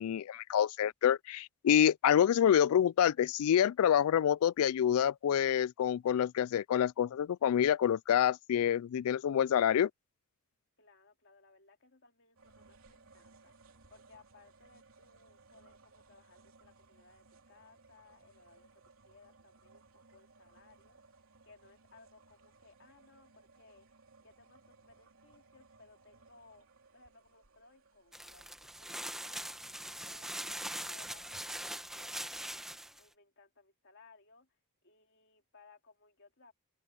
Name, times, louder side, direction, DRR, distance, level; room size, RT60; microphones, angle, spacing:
voice 1, 0.0-9.9, left 9 dB, 75° left, 0.3 m, -27 dB
voice 2, 10.8-13.5 13.9-21.0 21.4-23.9 24.2-26.7 26.9-29.5 30.0-31.4 31.7-32.7 33.0-36.5, left 4 dB, 55° left, 3.0 m, -62 dB
sound 1, 12.4-30.6, right 3 dB, 65° right, 3.4 m, -63 dB
sound 2, 28.1-33.0, right 1 dB, ahead, 1.1 m, -42 dB
head